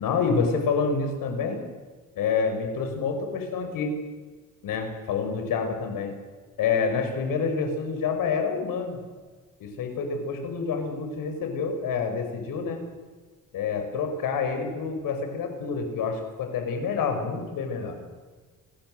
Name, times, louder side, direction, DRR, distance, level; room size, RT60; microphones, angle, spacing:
voice 1, 0.0-1.6 2.2-3.9 4.6-6.1 6.6-9.0 9.6-12.8 13.5-18.0, left 5 dB, 90° left, 5 dB, 6.0 m, -28 dB
29.0 x 21.0 x 7.9 m, 1.4 s
cardioid pair, 175°, 32 cm